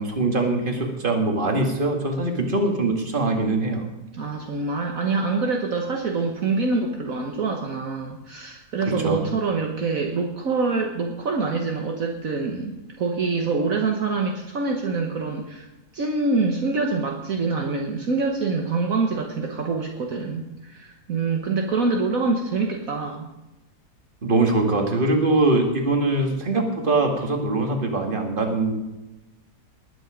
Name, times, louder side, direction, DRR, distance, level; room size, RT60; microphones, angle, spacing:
voice 1, 0.0-3.9 9.0-9.3 24.2-28.7, right 2 dB, 30° right, 2 dB, 2.2 m, -22 dB
voice 2, 4.1-15.7 15.9-23.3, right 3 dB, 60° right, 1 dB, 1.6 m, -25 dB
20.0 x 9.3 x 5.1 m, 1.0 s
omnidirectional pair, 1.7 m